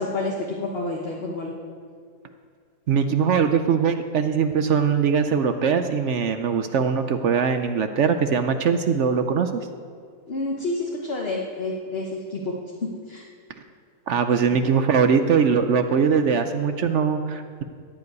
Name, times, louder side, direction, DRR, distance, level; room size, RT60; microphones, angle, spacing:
voice 1, 0.0-1.5 10.3-12.5 12.8-13.2 14.4-14.6 16.1-16.3, left 2 dB, 45° left, -1 dB, 1.2 m, -29 dB
voice 2, 2.9-9.6 14.1-17.6, right 6 dB, 60° right, 8 dB, 0.8 m, -21 dB
14.0 x 5.5 x 9.4 m, 2.2 s
omnidirectional pair, 1.6 m